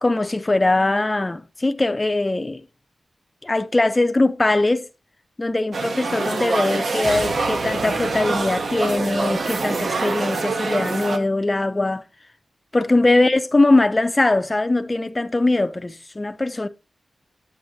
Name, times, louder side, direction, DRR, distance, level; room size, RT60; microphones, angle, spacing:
voice 1, 0.0-2.6 3.4-4.9 5.4-12.0 12.7-16.7, left 2 dB, 20° left, 0.4 m, -21 dB
sound 1, 5.7-11.2, right 3 dB, 60° right, 0.7 m, -25 dB
sound 2, 7.0-10.5, right 2 dB, 45° right, 3.4 m, -40 dB
9.6 x 7.7 x 2.6 m
wide cardioid pair, 165°, 0 cm